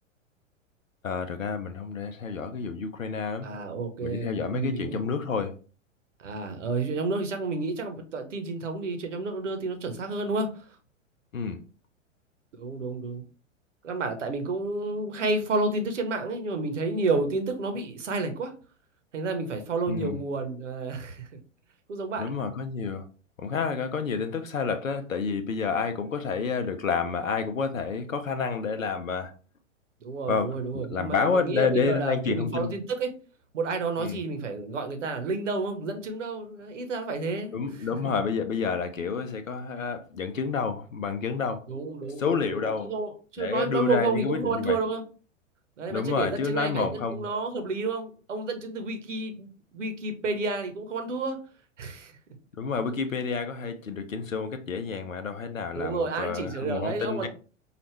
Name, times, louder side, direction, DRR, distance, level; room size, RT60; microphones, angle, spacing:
voice 1, 1.0-3.5 4.0-5.6 11.3-11.6 19.9-20.2 22.2-23.1 23.4-29.3 30.3-32.7 34.0-34.2 37.5-41.6 42.2-42.9 43.4-44.8 45.9-47.2 52.6-57.3, left 5 dB, 80° left, 0.7 m, -29 dB
voice 2, 3.4-5.0 6.2-10.7 12.6-13.2 13.8-18.5 19.1-21.3 21.9-22.3 30.0-33.1 33.5-37.9 41.7-45.0 45.8-51.4 51.8-52.2 55.7-57.3, right 3 dB, 70° right, 1.1 m, -30 dB
4.9 x 2.4 x 3.2 m
figure-of-eight pair, 100°, 39 cm